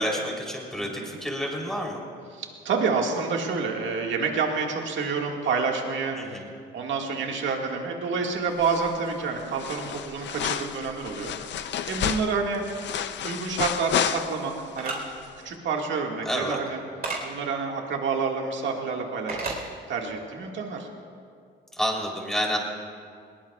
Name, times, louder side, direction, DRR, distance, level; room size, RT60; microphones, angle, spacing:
voice 1, 0.0-2.0 6.2-6.5 16.2-16.6 21.7-22.6, equal, ahead, -1 dB, 3.4 m, -29 dB
voice 2, 2.3-6.4 6.7-11.3 11.6-12.6 13.2-15.0 15.4-16.8 17.2-19.4 19.9-20.9, right 4 dB, 70° right, 1 dB, 1.9 m, -28 dB
sound 1, 8.6-9.1 9.4-14.7 15.0-15.1, left 9 dB, 65° left, 0.6 m, -31 dB
sound 2, 14.8-15.0 17.0-17.2 19.3-19.6, right 3 dB, 50° right, 4.0 m, -30 dB
21.0 x 19.0 x 2.4 m, 2.2 s
cardioid pair, 90°, 20 cm